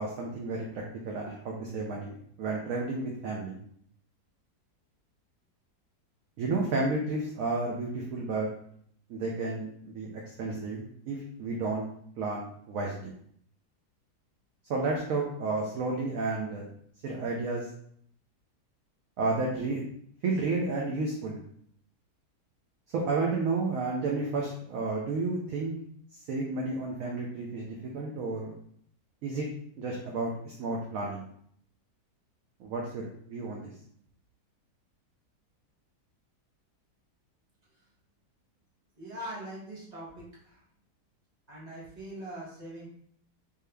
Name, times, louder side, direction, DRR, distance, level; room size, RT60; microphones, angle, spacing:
voice 1, 0.0-3.6 6.4-8.5 9.1-10.1 10.4-11.9 12.2-13.1 14.7-16.7 17.0-17.7 19.2-19.8 20.2-21.4 22.9-25.7 26.3-28.5 29.2-29.5 29.8-31.2 32.6-33.7, right 3 dB, 65° right, -1 dB, 0.9 m, -31 dB
voice 2, 39.0-40.6 41.5-42.9, right 1 dB, 25° right, -6 dB, 1.4 m, -42 dB
3.6 x 2.8 x 3.3 m, 0.65 s
omnidirectional pair, 1.8 m